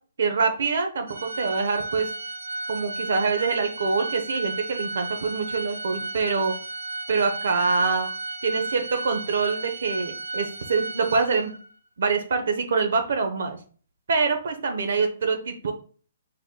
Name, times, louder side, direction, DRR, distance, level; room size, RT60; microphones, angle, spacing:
voice 1, 0.2-2.1 2.7-6.5 7.1-8.1 8.4-11.5 12.0-13.6 14.1-15.7, right 4 dB, 65° right, 5 dB, 0.8 m, -25 dB
Organ, 1.1-11.7, right 3 dB, 80° right, 2.4 m, -34 dB
5.4 x 4.4 x 2.2 m, 0.41 s
hypercardioid pair, 170°, 0 cm